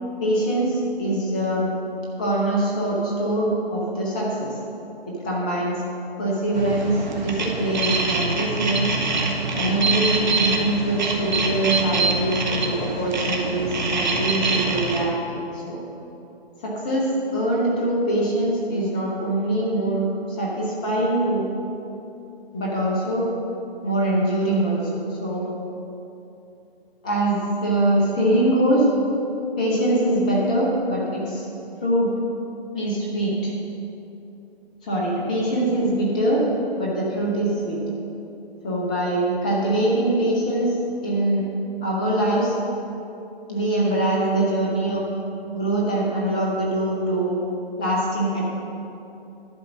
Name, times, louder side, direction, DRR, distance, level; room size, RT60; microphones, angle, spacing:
voice 1, 0.2-1.7 2.2-4.5 5.1-5.8 6.2-8.9 9.5-15.8 16.6-20.0 20.3-21.4 22.5-23.3 23.8-24.8 25.1-25.5 27.0-28.9 29.6-31.5 31.8-32.1 32.7-33.5 34.8-36.4 36.8-37.8 38.6-40.8 41.0-41.4 41.8-42.5 43.5-45.0 45.5-47.4 47.8-48.5, right 1 dB, 10° left, -4 dB, 0.5 m, -23 dB
sound 1, 6.5-15.0, right 3 dB, 45° right, 1.3 m, -25 dB
11.0 x 4.9 x 7.1 m, 2.9 s
figure-of-eight pair, 145°, 31 cm